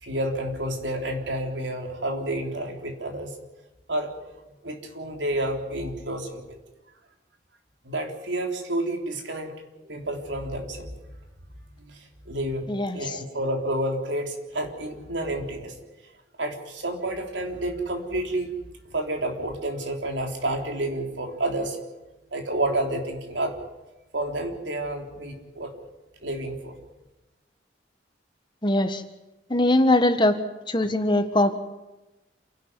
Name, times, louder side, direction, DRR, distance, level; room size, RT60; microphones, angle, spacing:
voice 1, 0.0-3.3 3.9-4.1 4.6-6.6 7.9-10.9 11.8-15.7 16.4-18.5 18.9-21.8 22.3-23.6 24.1-25.7 26.2-26.8, right 1 dB, 90° right, 3 dB, 3.7 m, -30 dB
voice 2, 12.7-13.0 28.6-29.0 29.5-30.4 30.7-31.6, left 1 dB, 25° left, 8 dB, 1.5 m, -21 dB
28.0 x 11.5 x 9.7 m, 1.0 s
head